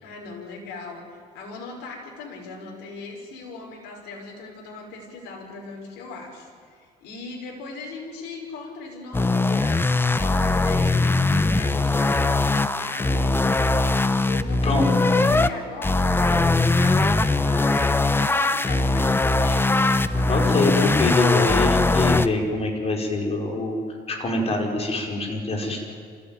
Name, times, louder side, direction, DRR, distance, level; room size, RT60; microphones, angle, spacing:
voice 1, 0.0-13.3 14.2-19.7, left 3 dB, 90° left, 0 dB, 5.4 m, -39 dB
sound 1, 9.1-15.5 15.8-22.3, left 2 dB, 15° left, 0.9 m, -21 dB
voice 2, 20.3-23.8 24.1-25.8, left 2 dB, 35° left, 1 dB, 5.3 m, -24 dB
26.5 x 16.0 x 9.3 m, 2.1 s
cardioid pair, 110°, 17 cm